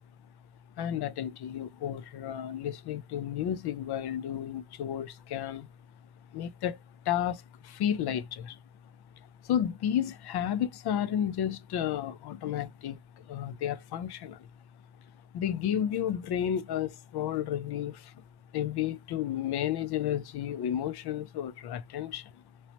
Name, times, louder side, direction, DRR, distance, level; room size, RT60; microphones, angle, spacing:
voice 1, 0.8-5.7 6.3-6.8 7.1-8.6 9.4-14.5 15.3-18.1 18.5-22.3, left 10 dB, 60° left, 0.5 m, -32 dB
3.0 x 3.0 x 2.8 m
cardioid pair, 150°, 45 cm